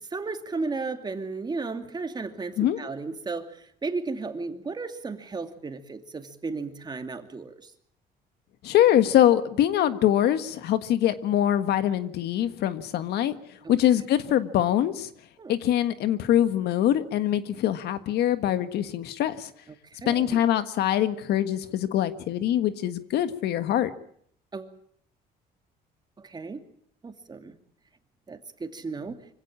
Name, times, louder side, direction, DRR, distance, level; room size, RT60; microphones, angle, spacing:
voice 1, 0.1-7.7 13.6-13.7 15.4-15.6 20.0-20.4 24.5-24.7 26.2-26.6 27.0-27.6 28.3-29.2, right 3 dB, 25° right, 6 dB, 2.5 m, -34 dB
voice 2, 8.6-13.3 13.7-15.1 15.5-19.5 20.0-23.9, left 11 dB, 75° left, 11 dB, 1.6 m, -23 dB
25.0 x 16.5 x 8.7 m, 0.66 s
cardioid pair, 110°, 17 cm